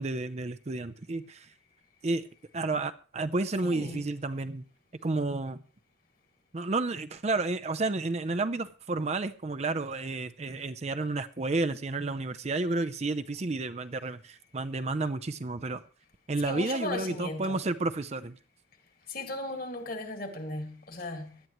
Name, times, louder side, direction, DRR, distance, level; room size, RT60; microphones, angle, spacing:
voice 1, 0.0-1.5 2.0-2.3 2.5-4.6 5.0-5.6 6.5-15.8 16.3-18.4, right 3 dB, 35° right, 0.5 m, -31 dB
voice 2, 3.6-4.0 16.4-17.6 19.1-21.4, left 2 dB, 50° left, 1.9 m, -37 dB
17.0 x 11.0 x 3.0 m
head